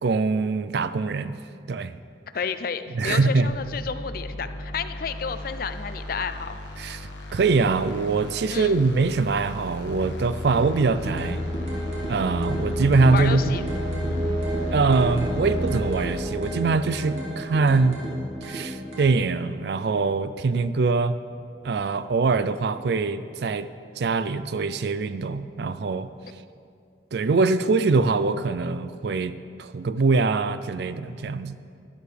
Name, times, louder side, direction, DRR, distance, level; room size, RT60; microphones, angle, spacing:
voice 1, 0.0-1.4 1.7-2.0 2.9-3.6 6.8-11.4 12.1-13.6 14.7-18.0 18.4-21.2 21.6-23.7 24.0-26.1 27.1-31.6, right 4 dB, 65° right, 13 dB, 0.4 m, -23 dB
voice 2, 2.3-6.6 8.5-8.8 13.1-13.6, left 6 dB, 50° left, 11 dB, 0.4 m, -31 dB
sound 1, 3.4-16.2, left 1 dB, 85° left, 1.3 m, -38 dB
sound 2, 9.8-19.6, equal, 35° right, 2.7 m, -31 dB
sound 3, 11.0-19.0, equal, 80° right, 2.4 m, -37 dB
12.5 x 12.0 x 3.4 m, 2.3 s
head